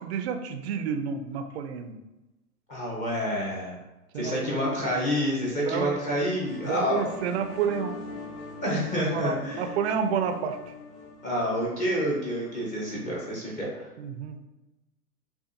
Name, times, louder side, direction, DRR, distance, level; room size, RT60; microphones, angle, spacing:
voice 1, 0.0-2.0 4.1-4.8 5.6-6.0 6.6-8.0 8.9-10.7 13.1-13.2 14.0-14.4, right 7 dB, 45° right, 6 dB, 0.5 m, -30 dB
voice 2, 2.7-3.8 4.2-7.1 8.6-9.6 11.2-13.9, equal, 15° left, -4 dB, 0.7 m, -28 dB
sound 1, 6.1-13.5, left 3 dB, 80° left, 1.0 m, -43 dB
7.0 x 2.4 x 2.5 m, 1.0 s
hypercardioid pair, 120°, 47 cm